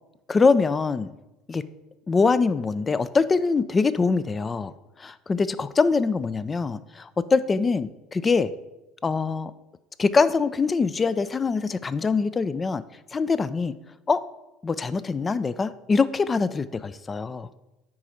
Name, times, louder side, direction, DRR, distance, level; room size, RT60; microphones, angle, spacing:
voice 1, 0.3-1.1 1.5-1.6 2.1-4.7 5.0-8.5 9.0-9.5 10.0-12.8 13.1-13.7 14.1-14.2 14.6-17.5, left 4 dB, 25° left, 15 dB, 0.4 m, -23 dB
8.5 x 5.0 x 4.2 m, 0.96 s
hypercardioid pair, 70°, 0 cm